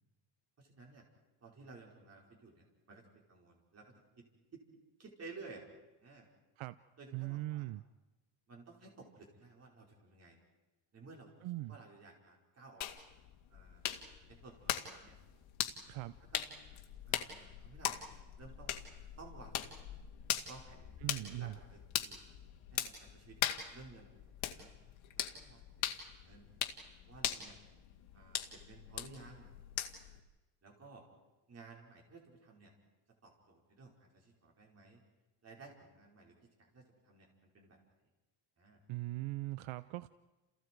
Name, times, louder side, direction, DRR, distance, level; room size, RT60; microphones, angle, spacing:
voice 1, 0.6-1.1 1.4-4.2 4.5-4.6 5.0-5.6 6.0-6.3 7.0-7.7 8.5-10.4 10.9-11.3 11.7-13.0 13.5-13.8 14.3-15.2 16.3-16.6 17.1-18.1 18.4-18.8 19.2-19.9 20.5-22.2 22.7-23.4 23.7-24.7 25.2-26.5 27.1-27.6 28.1-29.5 30.6-31.0 31.5-32.7 33.2-35.0 35.4-37.3 37.5-37.9 38.6-38.8, right 3 dB, 35° right, 0 dB, 5.3 m, -55 dB
voice 2, 7.1-7.8 11.4-11.8 15.9-16.2 21.0-21.6 38.9-40.1, right 18 dB, 85° right, 15 dB, 0.7 m, -40 dB
sound 1, 12.8-30.2, left 11 dB, 85° left, 2.1 m, -41 dB
29.5 x 29.0 x 4.7 m, 1.1 s
cardioid pair, 165°, 46 cm